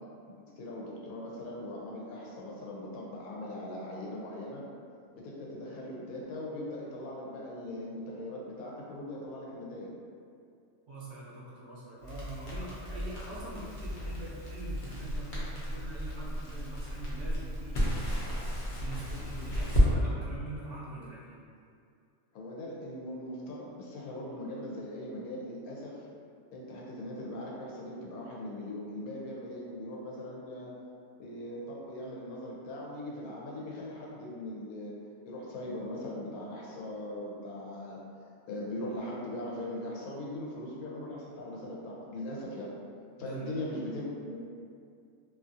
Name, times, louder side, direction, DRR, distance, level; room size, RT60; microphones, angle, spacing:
voice 1, 0.3-4.6 5.1-9.9 19.8-19.9 20.9-21.1 22.3-26.1 26.5-30.7 31.2-35.0 35.3-42.7 43.2-44.4, left 1 dB, 90° left, -4 dB, 1.1 m, -40 dB
voice 2, 10.9-21.4 43.2-43.6, right 2 dB, 65° right, -8 dB, 0.8 m, -44 dB
Crackle, 12.0-19.9, equal, 50° left, 0.6 m, -33 dB
2.7 x 2.4 x 2.5 m, 2.3 s
omnidirectional pair, 1.5 m